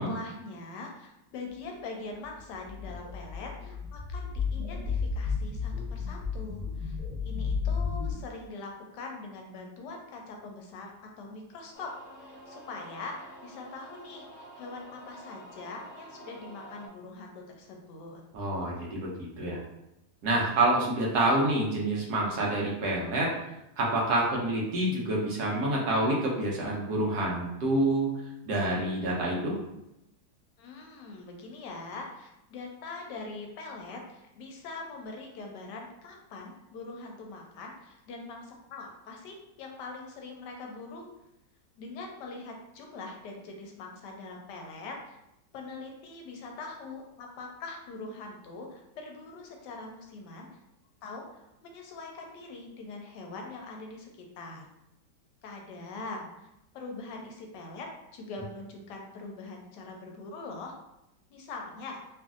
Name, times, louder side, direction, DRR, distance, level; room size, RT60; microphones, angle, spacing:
voice 1, 0.0-7.0 7.2-11.9 12.2-18.2 30.6-41.1 41.8-45.2 45.5-50.5 51.0-54.6 55.4-56.5 56.7-60.7 61.3-62.0, left 3 dB, 75° left, 1 dB, 1.1 m, -43 dB
sound 1, 2.4-8.1, left 5 dB, 40° right, 1.0 m, -33 dB
sound 2, 11.7-16.9, right 1 dB, 55° left, 0.8 m, -49 dB
voice 2, 18.3-19.6 20.2-23.3 23.8-28.1 28.5-29.5, right 1 dB, 70° right, -3 dB, 1.2 m, -27 dB
3.1 x 2.5 x 2.4 m, 0.86 s
omnidirectional pair, 1.9 m